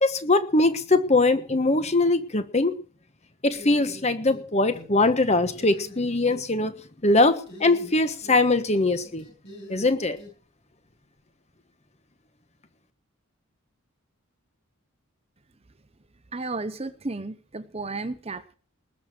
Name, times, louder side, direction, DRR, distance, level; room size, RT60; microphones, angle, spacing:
voice 1, 0.0-2.7 3.4-6.7 7.0-9.2 9.7-10.2, left 2 dB, 30° left, 11 dB, 1.3 m, -22 dB
sound 1, 3.5-4.4 4.7-5.2 5.5-6.4 7.5-8.4 8.7-10.3, left 1 dB, 50° left, 7.1 m, -44 dB
voice 2, 16.3-18.6, right 3 dB, 30° right, 13 dB, 0.9 m, -33 dB
20.0 x 6.7 x 7.7 m, 0.40 s
head